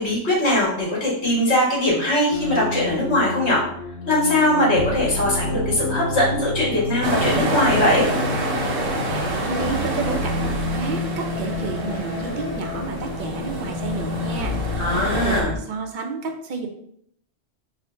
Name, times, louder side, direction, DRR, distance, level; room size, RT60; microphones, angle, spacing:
voice 1, 0.0-3.6 4.1-8.1 14.8-15.5, left 1 dB, 70° left, -5 dB, 1.8 m, -21 dB
sound 1, 2.3-15.6, left 2 dB, 90° left, 1.0 m, -29 dB
sound 2, 7.0-15.4, right 1 dB, 80° right, 1.0 m, -27 dB
voice 2, 9.1-14.5 15.1-16.7, right 4 dB, 55° right, 3 dB, 0.7 m, -30 dB
3.7 x 2.1 x 4.3 m, 0.68 s
omnidirectional pair, 1.1 m